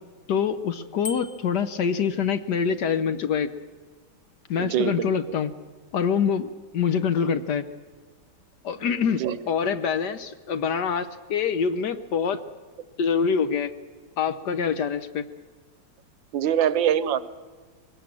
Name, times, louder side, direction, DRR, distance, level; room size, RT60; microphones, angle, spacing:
voice 1, 0.3-3.5 4.5-5.5 5.9-7.7 8.6-12.4 13.0-13.7 14.2-15.3, left 6 dB, 60° left, 11 dB, 1.3 m, -25 dB
Bicycle bell, 1.0-1.7, left 4 dB, 35° left, 0.7 m, -37 dB
voice 2, 4.6-5.1 9.2-9.4 16.3-17.2, right 9 dB, 70° right, 15 dB, 1.4 m, -23 dB
22.0 x 18.5 x 7.5 m, 1.5 s
omnidirectional pair, 2.2 m